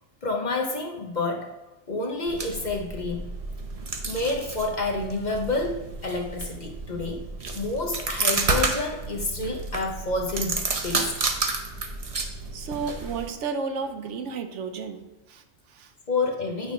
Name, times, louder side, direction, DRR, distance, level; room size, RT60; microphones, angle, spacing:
voice 1, 0.2-1.5 1.9-3.3 4.0-7.2 7.6-11.2 16.1-16.7, left 2 dB, 45° left, 2 dB, 0.8 m, -29 dB
sound 1, 2.3-13.3, right 3 dB, 35° right, 0.6 m, -31 dB
voice 2, 12.5-15.9, right 5 dB, 75° right, 7 dB, 1.0 m, -33 dB
9.0 x 3.4 x 5.1 m, 1.1 s
omnidirectional pair, 1.2 m